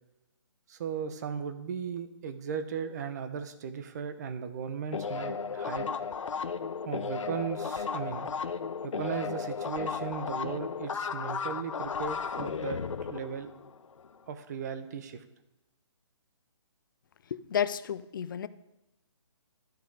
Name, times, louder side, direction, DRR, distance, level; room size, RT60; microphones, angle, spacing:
voice 1, 0.7-5.9 6.9-8.3 8.8-12.8 13.1-13.5 14.3-15.2, right 7 dB, 35° right, 10 dB, 0.8 m, -36 dB
sound 1, 4.9-14.1, left 6 dB, 85° left, 0.7 m, -35 dB
voice 2, 17.3-18.5, left 8 dB, 40° left, 15 dB, 0.5 m, -31 dB
12.5 x 6.6 x 4.8 m, 0.94 s
hypercardioid pair, 160°, 16 cm